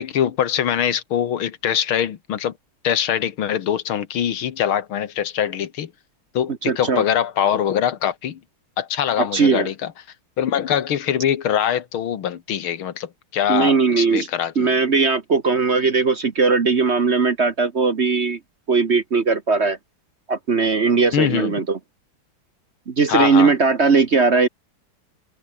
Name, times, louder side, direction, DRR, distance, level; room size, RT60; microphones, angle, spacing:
voice 1, 0.0-2.5 2.8-5.9 6.3-8.4 8.8-9.9 10.4-14.7 21.1-21.6 23.1-23.5, left 9 dB, 85° left, 2.2 m, -23 dB
voice 2, 6.6-7.0 9.2-9.7 13.5-14.3 14.5-18.4 18.7-19.8 20.3-21.8 22.9-24.5, right 4 dB, 40° right, 1.2 m, -19 dB
omnidirectional pair, 2.2 m